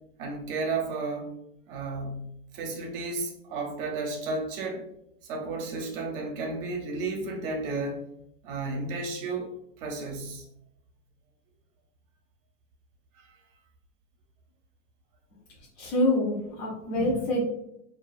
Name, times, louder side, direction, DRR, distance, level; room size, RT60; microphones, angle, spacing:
voice 1, 0.2-1.3 1.7-4.8 5.2-8.0 8.4-9.5 9.8-10.5 13.2-13.3, right 3 dB, 50° right, 1 dB, 0.6 m, -33 dB
voice 2, 15.8-17.4, left 1 dB, 60° left, -4 dB, 0.8 m, -26 dB
2.4 x 2.4 x 2.3 m, 0.77 s
supercardioid pair, 145°, 36 cm